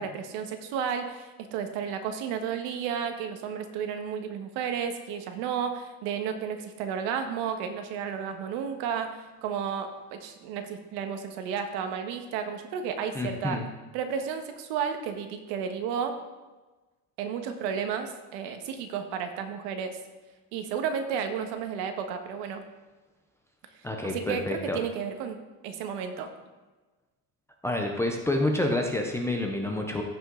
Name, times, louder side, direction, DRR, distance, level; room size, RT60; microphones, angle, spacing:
voice 1, 0.0-13.6 13.9-16.1 17.2-20.0 20.5-22.6 24.0-25.4 25.6-26.3, right 7 dB, 80° right, 7 dB, 1.4 m, -32 dB
voice 2, 13.1-13.7 23.8-24.8 27.6-30.0, left 1 dB, 5° left, 1 dB, 0.4 m, -28 dB
15.0 x 5.5 x 3.7 m, 1.2 s
cardioid pair, 180°, 40 cm